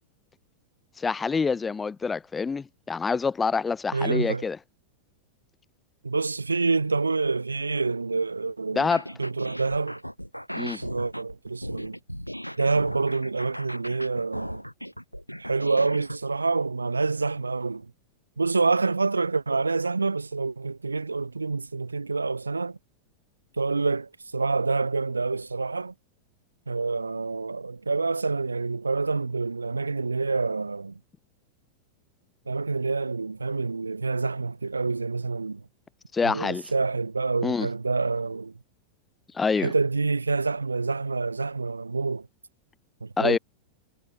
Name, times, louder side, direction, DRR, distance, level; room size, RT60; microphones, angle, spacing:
voice 1, 1.0-4.6 8.7-9.0 10.5-10.8 36.1-36.7 37.4-37.7 39.3-39.7 43.2-43.4, left 5 dB, 15° left, 5.5 m, -26 dB
voice 2, 3.9-4.4 6.0-8.9 9.2-10.0 10.6-12.0 12.6-14.6 15.4-17.9 18.4-22.8 23.6-25.9 26.7-31.0 32.5-35.6 36.2-38.5 39.6-42.3 43.0-43.4, right 3 dB, 80° right, 2.4 m, -27 dB
sound 1, 8.8-16.2, equal, 90° left, 4.2 m, -37 dB
figure-of-eight pair, 90°, 0 cm